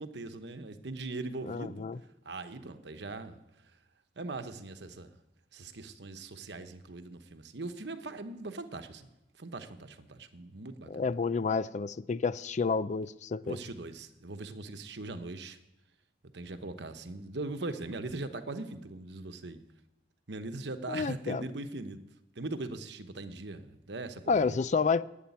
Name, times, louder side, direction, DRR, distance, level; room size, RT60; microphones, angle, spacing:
voice 1, 0.0-1.9 2.2-3.4 4.2-5.1 5.5-9.1 9.4-11.1 13.4-15.6 16.3-19.6 20.3-22.0 22.4-24.6, right 2 dB, 70° right, 9 dB, 1.0 m, -40 dB
voice 2, 1.4-2.0 10.9-13.6 20.9-21.4 24.3-25.0, left 5 dB, 40° left, 16 dB, 0.4 m, -30 dB
11.5 x 9.0 x 9.5 m, 0.91 s
head